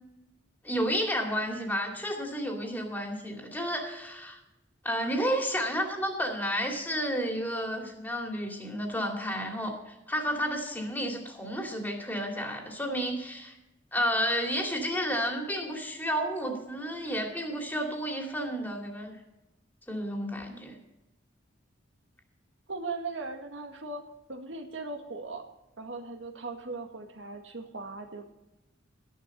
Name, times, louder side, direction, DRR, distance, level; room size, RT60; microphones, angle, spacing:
voice 1, 0.6-4.4 4.8-13.6 13.9-19.2 19.9-20.7, equal, 10° left, 2 dB, 2.6 m, -31 dB
voice 2, 22.7-25.5 25.8-28.2, right 3 dB, 75° right, 3 dB, 2.0 m, -38 dB
14.0 x 11.0 x 5.4 m, 0.94 s
head